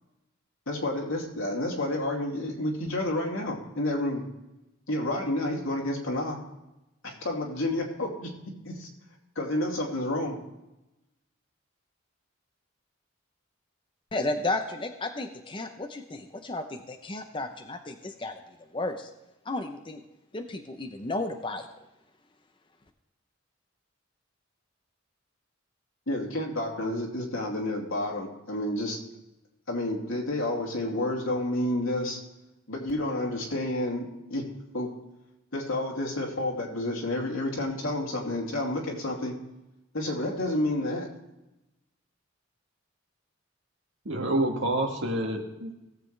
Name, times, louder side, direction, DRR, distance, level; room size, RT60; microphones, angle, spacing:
voice 1, 0.7-4.3 4.9-6.4 7.0-8.3 8.6-8.9 9.4-10.4 26.1-29.0 29.7-32.2 32.7-34.4 34.7-34.9 35.5-39.4 39.9-41.1, left 1 dB, 85° left, -1 dB, 2.8 m, -30 dB
voice 2, 14.1-18.4 18.7-19.1 19.5-20.0 20.3-21.7, left 2 dB, 25° left, 5 dB, 0.7 m, -33 dB
voice 3, 44.1-45.7, right 1 dB, 65° right, 1 dB, 2.0 m, -28 dB
17.5 x 7.6 x 3.3 m, 0.96 s
head